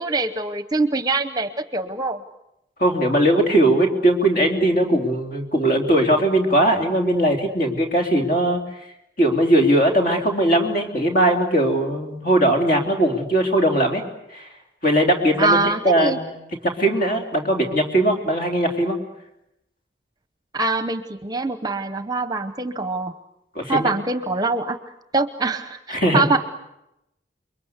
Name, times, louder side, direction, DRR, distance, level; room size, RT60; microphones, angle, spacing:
voice 1, 0.0-2.2 15.4-16.2 20.5-23.1 23.7-24.8 25.1-26.4, right 3 dB, 20° right, 11 dB, 0.9 m, -23 dB
voice 2, 2.8-8.6 9.2-14.0 14.3-14.5 14.8-19.0 23.6-23.9 25.9-26.2, right 1 dB, 45° left, 3 dB, 3.6 m, -19 dB
29.0 x 23.0 x 8.2 m, 0.85 s
head